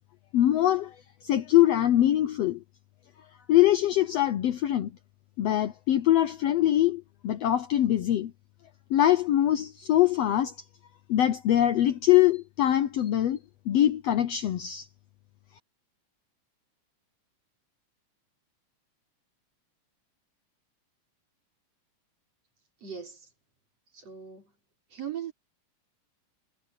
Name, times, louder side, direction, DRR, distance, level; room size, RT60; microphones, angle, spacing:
voice 1, 0.3-0.9 1.2-2.6 3.5-4.9 5.4-8.3 8.9-10.5 11.1-13.4 13.7-14.9, left 12 dB, 70° left, 1.6 m, -23 dB
voice 2, 22.8-23.3 23.9-24.5 24.9-25.3, right 9 dB, 50° right, 6.5 m, -39 dB
omnidirectional pair, 3.6 m